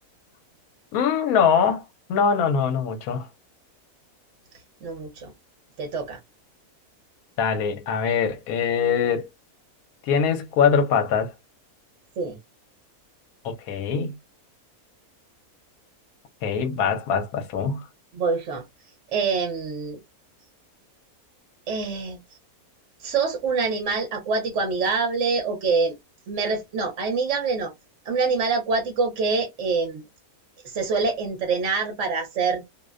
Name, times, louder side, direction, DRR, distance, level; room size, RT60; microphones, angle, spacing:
voice 1, 0.9-3.3 7.4-9.3 10.1-11.3 13.4-14.2 16.4-17.9, left 6 dB, 80° left, 1.1 m, -23 dB
voice 2, 4.8-5.3 5.8-6.2 12.2-12.4 18.1-18.6 19.1-20.0 21.7-22.2 23.0-25.9 26.3-27.7 28.0-30.0 30.6-32.6, right 4 dB, 60° right, 1.0 m, -25 dB
2.6 x 2.1 x 2.3 m
omnidirectional pair, 1.6 m